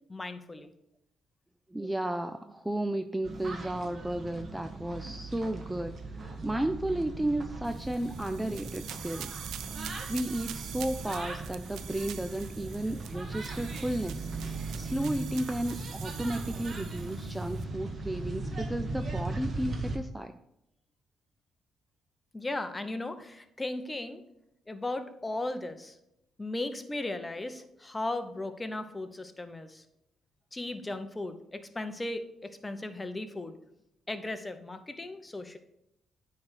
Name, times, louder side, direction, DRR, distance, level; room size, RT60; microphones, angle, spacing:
voice 1, 0.1-0.7 22.3-24.2 24.7-26.0 26.4-29.8 30.5-33.6 34.1-35.6, left 2 dB, 20° left, 9 dB, 0.8 m, -36 dB
voice 2, 1.7-9.3 10.1-14.3 14.8-20.3, right 1 dB, 10° right, 9 dB, 0.4 m, -33 dB
sound 1, 3.2-20.0, right 2 dB, 40° right, 1.3 m, -38 dB
sound 2, 7.6-17.6, right 10 dB, 80° right, 0.4 m, -45 dB
9.4 x 3.4 x 6.3 m, 0.81 s
cardioid pair, 90°, 0 cm